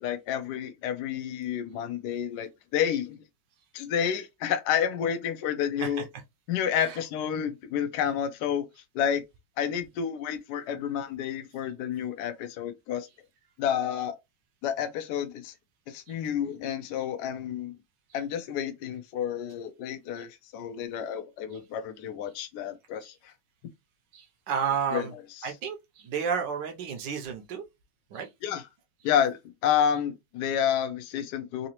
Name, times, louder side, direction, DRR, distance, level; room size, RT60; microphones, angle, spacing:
voice 1, 0.0-3.2 3.7-6.0 6.5-8.6 8.9-9.2 9.6-13.1 13.6-14.2 14.6-15.5 15.9-17.7 18.1-23.3 24.9-25.1 28.4-28.6 29.0-29.4 29.6-31.7, left 9 dB, 80° left, 0.9 m, -30 dB
voice 2, 24.1-25.1 25.4-27.7 28.1-28.3, right 7 dB, 70° right, 1.2 m, -32 dB
3.9 x 2.7 x 2.9 m
omnidirectional pair, 2.3 m